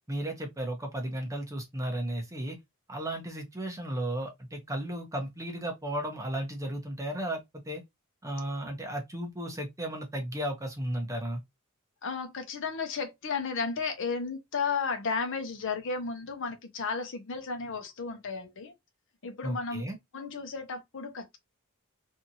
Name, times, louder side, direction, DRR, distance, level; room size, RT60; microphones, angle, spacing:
voice 1, 0.1-2.6 2.9-7.8 8.2-11.4 19.4-20.0, right 1 dB, 15° right, 0.8 m, -34 dB
voice 2, 12.0-18.7 19.2-19.8 20.1-21.4, left 5 dB, 60° left, 0.7 m, -33 dB
2.7 x 2.5 x 2.7 m
head